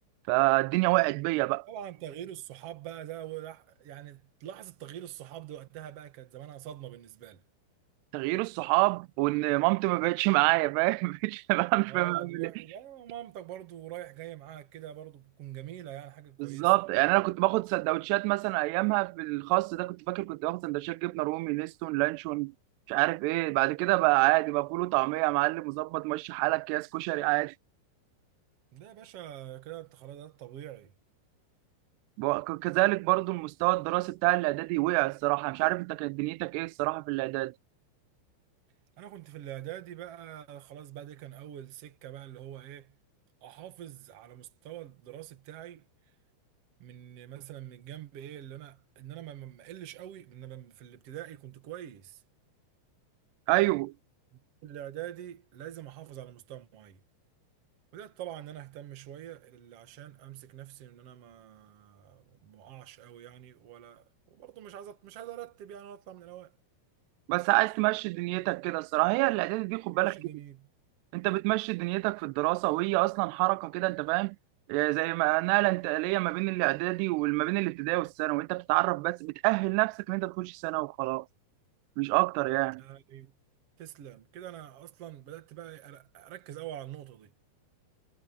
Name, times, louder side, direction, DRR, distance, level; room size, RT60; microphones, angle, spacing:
voice 1, 0.3-1.7 8.1-12.5 16.4-22.5 22.9-27.5 32.2-37.5 53.5-53.9 67.3-70.2 71.1-74.4 74.7-81.3 82.0-82.8, right 24 dB, 85° right, 2.4 m, -27 dB
voice 2, 1.7-7.4 11.9-16.7 28.7-30.9 39.0-42.9 43.4-45.8 46.8-52.2 54.3-57.0 57.9-66.5 69.9-70.7 82.8-83.3 83.8-87.3, right 12 dB, 70° right, 1.4 m, -44 dB
omnidirectional pair, 5.5 m